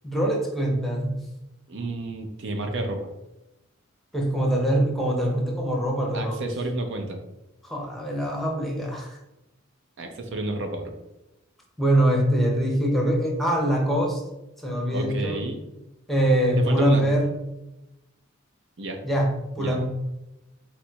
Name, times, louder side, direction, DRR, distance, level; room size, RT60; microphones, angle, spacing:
voice 1, 0.0-1.2 4.1-6.4 7.6-9.2 11.8-14.2 14.6-15.4 16.1-17.3 19.0-19.8, right 1 dB, ahead, -1 dB, 0.7 m, -23 dB
voice 2, 1.7-3.0 6.1-7.2 10.0-10.9 14.9-15.6 16.6-17.1 18.8-19.0 19.6-19.8, right 2 dB, 60° right, 4 dB, 0.6 m, -30 dB
4.1 x 2.5 x 4.4 m, 0.94 s
head